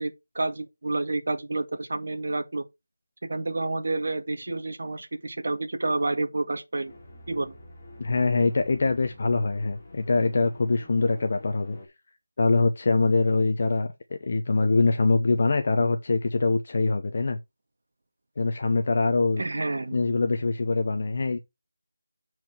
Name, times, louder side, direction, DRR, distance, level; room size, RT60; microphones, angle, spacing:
voice 1, 0.0-2.7 3.2-6.9 7.3-7.5 19.4-19.9, right 2 dB, 50° right, 1.8 m, -29 dB
sound 1, 6.9-11.9, left 1 dB, 15° left, 2.4 m, -47 dB
voice 2, 8.0-11.8 12.4-17.4 18.4-19.4 19.9-21.4, left 3 dB, 30° left, 0.8 m, -24 dB
7.6 x 4.6 x 6.0 m
figure-of-eight pair, 175°, 0 cm